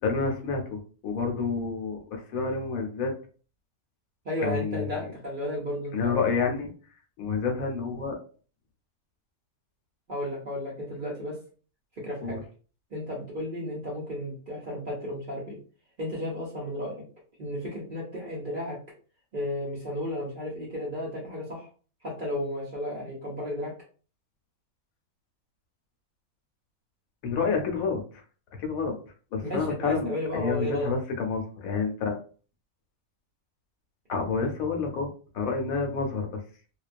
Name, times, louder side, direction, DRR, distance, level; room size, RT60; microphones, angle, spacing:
voice 1, 0.0-3.1 4.4-5.1 5.9-6.7 7.2-8.2 12.2-12.4 27.2-28.2 28.6-29.0 29.3-32.2 34.1-35.1 35.3-36.4, left 4 dB, 75° left, 3 dB, 1.0 m, -29 dB
voice 2, 4.2-6.1 10.1-11.4 12.0-12.4 12.9-15.6 16.0-17.0 17.4-18.8 19.3-21.7 22.0-23.7 29.4-30.9, left 1 dB, 50° right, -3 dB, 0.6 m, -33 dB
2.2 x 2.2 x 2.4 m, 0.39 s
omnidirectional pair, 1.5 m